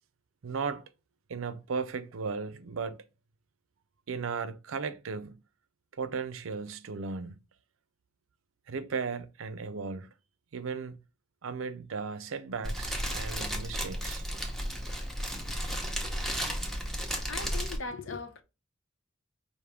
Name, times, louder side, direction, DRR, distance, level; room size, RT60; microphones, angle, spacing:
voice 1, 0.4-0.8 1.3-3.1 4.1-5.4 5.9-7.4 8.7-10.1 10.5-11.0 11.4-14.3, right 5 dB, 75° right, 0.5 m, -36 dB
Fire, 12.6-17.8, equal, ahead, 0.8 m, -33 dB
voice 2, 17.2-18.4, left 4 dB, 65° left, 0.7 m, -39 dB
5.0 x 2.6 x 3.4 m
head